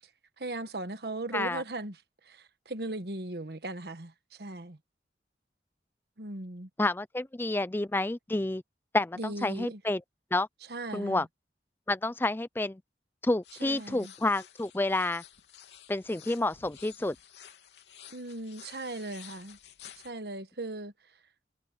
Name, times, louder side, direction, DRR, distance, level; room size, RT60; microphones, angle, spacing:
voice 1, 0.4-4.8 6.2-6.7 9.2-9.8 10.7-11.3 13.6-14.1 18.1-19.6 20.0-20.9, right 2 dB, 65° right, 1.4 m, -38 dB
voice 2, 6.8-8.6 8.9-10.0 10.3-10.5 10.9-11.3 11.9-12.8 13.2-15.2 15.9-17.2, left 2 dB, 10° left, 0.4 m, -29 dB
sound 1, 13.4-20.1, left 9 dB, 85° left, 3.2 m, -52 dB
head